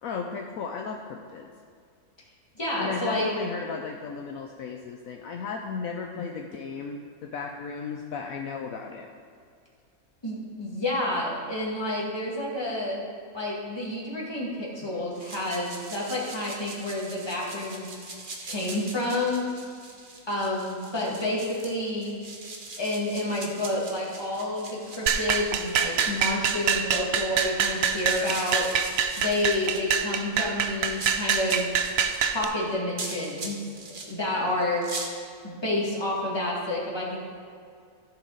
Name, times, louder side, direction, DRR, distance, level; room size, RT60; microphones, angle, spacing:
voice 1, 0.0-1.5 2.8-9.1, left 5 dB, 70° left, 2 dB, 1.0 m, -35 dB
voice 2, 2.6-3.3 10.2-13.0 13.3-17.9 18.5-19.5 20.3-22.2 22.8-28.7 29.2-31.7 32.2-34.9 35.4-37.2, left 1 dB, 15° left, -5 dB, 1.9 m, -29 dB
sound 1, 15.1-34.1 34.6-35.1, right 3 dB, 40° right, 1.0 m, -42 dB
sound 2, 25.1-32.4, right 7 dB, 65° right, 0.6 m, -25 dB
14.5 x 5.9 x 3.8 m, 2.3 s
omnidirectional pair, 1.6 m